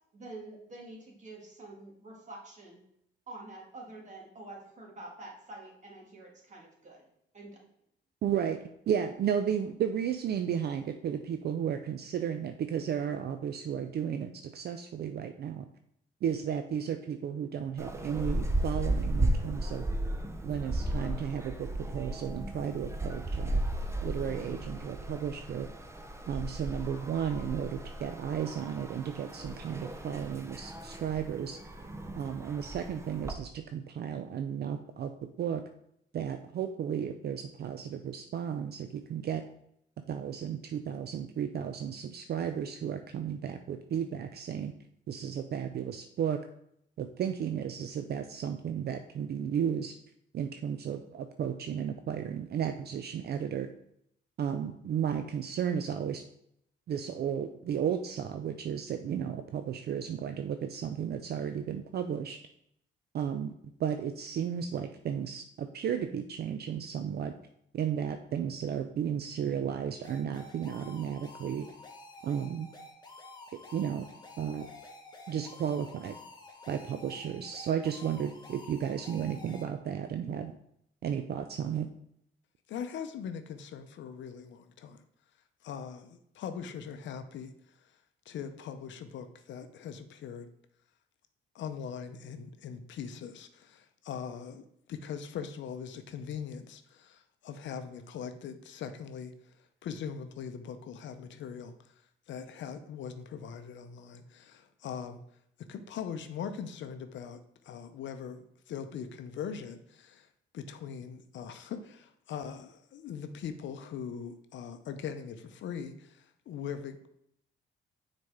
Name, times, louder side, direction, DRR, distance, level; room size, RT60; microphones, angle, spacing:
voice 1, 0.1-2.8 3.3-7.1 7.3-7.6, right 2 dB, 35° right, -1 dB, 1.9 m, -47 dB
voice 2, 8.2-8.6 8.9-15.7 16.2-19.8 20.4-23.6 24.0-25.7 26.3-31.6 32.2-35.1 35.4-35.6 36.1-39.4 40.1-44.7 45.1-46.4 47.0-50.0 50.3-53.7 54.4-56.2 56.9-62.4 63.1-63.5 63.8-67.3 67.7-71.7 72.2-72.7 73.7-74.1 74.4-74.7 75.3-76.2 76.7-80.5 81.0-81.9, right 8 dB, 55° right, 7 dB, 0.4 m, -33 dB
sound 1, 17.8-33.3, right 1 dB, 15° right, 0.6 m, -35 dB
sound 2, 70.0-79.6, left 2 dB, 20° left, 1.2 m, -50 dB
voice 3, 82.7-85.0 85.6-87.5 88.3-90.5 91.5-99.3 99.8-101.7 102.3-105.2 105.7-107.4 107.6-110.3 110.5-117.1, left 7 dB, 70° left, 9 dB, 0.6 m, -41 dB
6.4 x 4.2 x 3.5 m, 0.74 s
cardioid pair, 90°, 20 cm